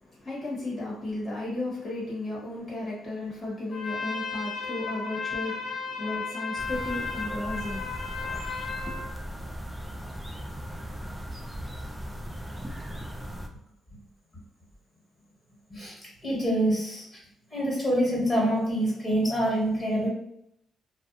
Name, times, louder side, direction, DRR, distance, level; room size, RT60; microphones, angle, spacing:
voice 1, 0.0-9.1, left 2 dB, 35° left, -6 dB, 1.0 m, -35 dB
Trumpet, 3.7-9.1, left 4 dB, 55° left, 0.7 m, -34 dB
sound 1, 6.6-13.5, equal, 5° right, 0.4 m, -38 dB
voice 2, 15.7-17.0 17.5-20.1, right 1 dB, 15° left, -4 dB, 1.5 m, -26 dB
2.5 x 2.1 x 2.6 m, 0.75 s
cardioid pair, 90°, 0 cm